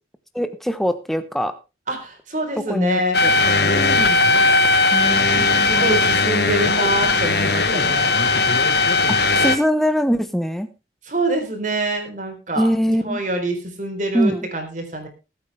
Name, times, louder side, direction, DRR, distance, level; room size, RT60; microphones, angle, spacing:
voice 1, 0.3-1.5 2.7-3.3 4.9-5.9 9.1-10.7 12.6-13.2 14.1-14.5, equal, ahead, 10 dB, 1.0 m, -23 dB
voice 2, 1.9-3.2 3.6-4.3 5.3-8.2 11.0-15.1, right 2 dB, 40° right, 4 dB, 3.8 m, -26 dB
sound 1, 3.1-9.6, left 3 dB, 60° left, 1.3 m, -18 dB
20.0 x 8.5 x 3.4 m, 0.28 s
head